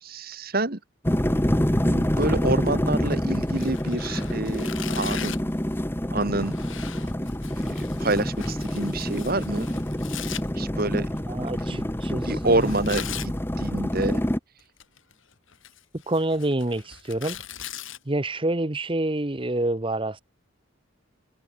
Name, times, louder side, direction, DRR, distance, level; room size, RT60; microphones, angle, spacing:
voice 1, 0.0-0.8 1.8-4.7 4.9-5.4 6.1-6.5 7.7-9.8 10.6-11.1 11.6-11.8 12.2-13.3 13.6-14.2, right 2 dB, 45° right, 1.8 m, -27 dB
sound 1, 1.0-14.4, equal, 10° left, 1.2 m, -27 dB
Tearing, 3.5-5.5 6.4-10.4 12.5-13.3 14.6-15.1 15.5-18.0, left 9 dB, 70° left, 6.7 m, -39 dB
voice 2, 11.3-12.7 16.1-17.4 18.1-20.2, right 1 dB, 25° right, 1.0 m, -27 dB
head